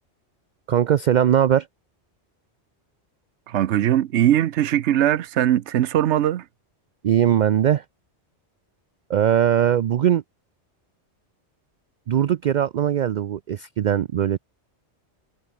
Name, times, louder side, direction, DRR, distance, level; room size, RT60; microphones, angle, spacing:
voice 1, 0.7-1.7 7.0-7.8 9.1-10.2 12.1-14.4, right 10 dB, 55° right, 0.5 m, -20 dB
voice 2, 3.5-6.5, right 11 dB, 85° right, 1.0 m, -20 dB
omnidirectional pair, 1.1 m